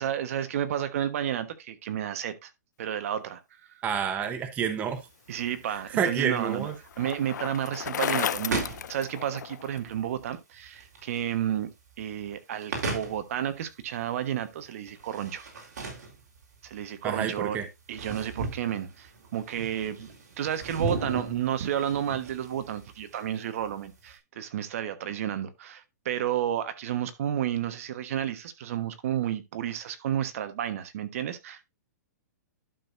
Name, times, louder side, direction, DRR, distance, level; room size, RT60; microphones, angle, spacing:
voice 1, 0.0-2.5 2.8-3.4 5.3-6.7 7.0-11.7 12.0-15.4 16.6-17.6 17.9-20.1 20.4-31.7, right 10 dB, 55° right, 1.3 m, -31 dB
voice 2, 3.8-5.0 5.9-6.7 17.0-17.7, right 7 dB, 15° right, 0.9 m, -28 dB
sound 1, 4.9-24.1, right 3 dB, 75° right, 3.9 m, -38 dB
Bicycle, 5.4-9.8, left 9 dB, 80° left, 0.5 m, -34 dB
11.5 x 6.4 x 2.6 m
hypercardioid pair, 160°, 9 cm